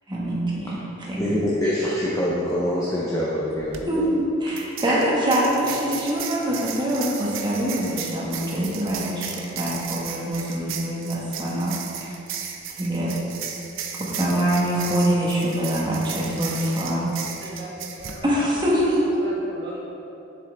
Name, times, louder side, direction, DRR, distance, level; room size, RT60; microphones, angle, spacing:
voice 1, 0.1-0.8 1.1-1.4 3.9-12.2 12.8-13.2 14.0-17.1 18.2-19.2, right 1 dB, 25° right, -5 dB, 1.5 m, -24 dB
voice 2, 1.2-4.1 4.8-5.0 16.5-16.7, equal, 15° left, -7 dB, 0.9 m, -25 dB
sound 1, 3.6-3.8 4.6-18.2, right 7 dB, 70° right, 0.7 m, -35 dB
voice 3, 17.0-18.9 19.1-19.9, right 1 dB, 55° right, -5 dB, 1.9 m, -40 dB
7.4 x 7.4 x 3.6 m, 2.8 s
head